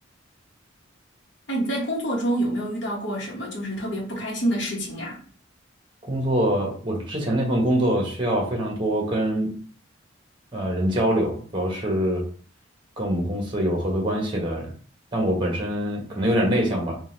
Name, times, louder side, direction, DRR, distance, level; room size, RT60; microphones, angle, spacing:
voice 1, 1.5-5.2, right 1 dB, 60° left, 1.1 m, -27 dB
voice 2, 6.1-9.5 10.5-12.2 13.0-14.7 15.1-17.0, equal, 25° right, 1.1 m, -24 dB
4.0 x 2.4 x 3.9 m
head